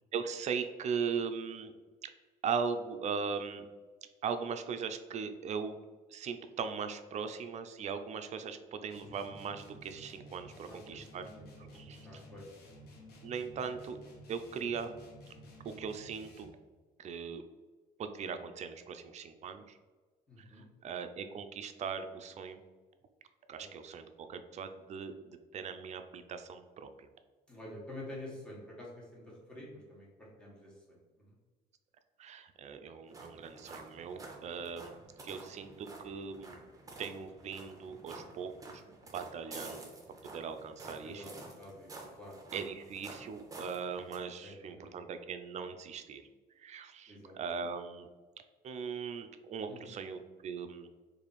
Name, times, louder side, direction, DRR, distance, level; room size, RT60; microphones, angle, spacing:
voice 1, 0.1-1.7 2.0-2.1 2.4-3.7 4.2-5.8 6.1-11.3 11.7-12.2 13.2-14.0 14.3-14.9 15.6-16.5 17.0-17.4 18.0-19.8 20.4-22.6 23.5-27.1 32.2-34.9 35.2-36.6 37.0-38.8 39.1-39.9 40.2-41.3 42.5-46.3 46.6-48.1 48.6-50.9, right 6 dB, 45° right, 8 dB, 0.4 m, -39 dB
sound 1, 8.9-16.7, equal, 70° left, 0.9 m, -53 dB
voice 2, 10.6-11.4 11.7-12.9 20.3-20.6 23.6-23.7 27.5-31.3 35.2-35.3 35.7-35.8 41.0-42.4 44.4-45.0 47.1-47.3 49.7-49.9, left 1 dB, 5° left, -5 dB, 1.3 m, -49 dB
sound 2, 33.1-44.2, right 2 dB, 20° right, 0.8 m, -50 dB
3.3 x 2.6 x 4.0 m, 1.3 s
cardioid pair, 110°, 17 cm